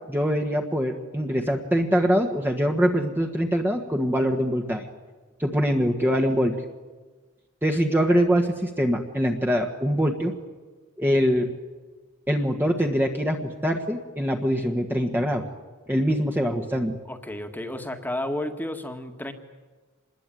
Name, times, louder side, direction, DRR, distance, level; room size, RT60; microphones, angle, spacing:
voice 1, 0.1-4.9 5.4-6.5 7.6-10.3 11.0-11.5 12.3-15.4 15.9-16.9, equal, 10° right, 2 dB, 1.5 m, -23 dB
voice 2, 17.1-19.3, left 1 dB, 10° left, 6 dB, 1.8 m, -32 dB
26.0 x 21.0 x 9.2 m, 1.3 s
head